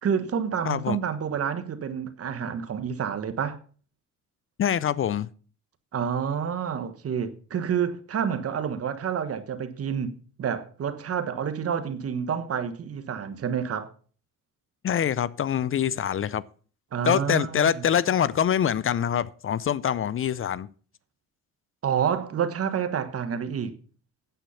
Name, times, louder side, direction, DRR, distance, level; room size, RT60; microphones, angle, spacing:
voice 1, 0.0-3.6 5.9-13.9 16.9-17.8 21.8-23.7, right 7 dB, 50° right, 1.3 m, -29 dB
voice 2, 0.7-1.0 4.6-5.3 14.8-16.4 17.0-20.7, left 9 dB, 45° left, 0.5 m, -24 dB
9.2 x 8.2 x 5.6 m
cardioid pair, 90°, 30 cm